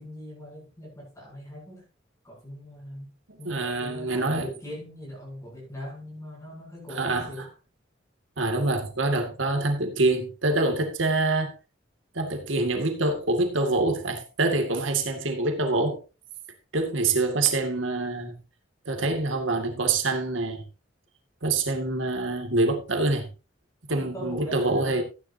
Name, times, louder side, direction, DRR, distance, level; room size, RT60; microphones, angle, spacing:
voice 1, 0.0-1.8 2.2-3.1 3.4-7.5 23.9-25.0, equal, 15° left, 7.6 m, -40 dB
voice 2, 3.3-4.5 6.9-7.5 8.4-11.6 12.1-16.0 16.7-18.4 18.9-20.6 21.4-23.3 23.9-25.0, right 2 dB, 80° right, 2.1 m, -25 dB
15.0 x 10.5 x 2.8 m
head